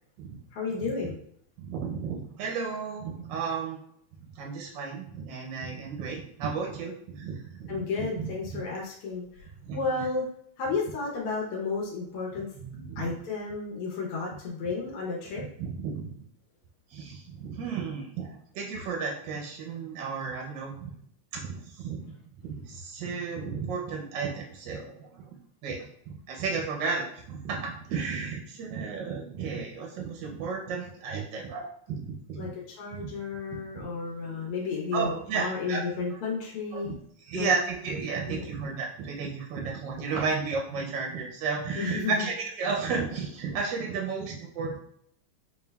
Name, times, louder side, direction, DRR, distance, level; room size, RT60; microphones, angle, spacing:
voice 1, 0.5-1.2 7.7-10.2 10.6-12.5 13.0-15.5 32.3-36.9 37.3-37.5 38.3-38.4 41.7-42.3, left 4 dB, 80° left, -2 dB, 1.6 m, -32 dB
voice 2, 1.6-3.8 4.2-7.8 8.2-8.3 9.6-10.0 12.6-13.1 15.6-16.1 16.9-20.9 21.3-22.0 22.4-25.2 25.6-32.5 32.9-33.1 33.7-33.8 34.9-35.8 36.7-36.9 37.3-44.8, right 5 dB, 70° right, 0 dB, 1.2 m, -33 dB
4.6 x 3.2 x 2.2 m, 0.67 s
omnidirectional pair, 2.4 m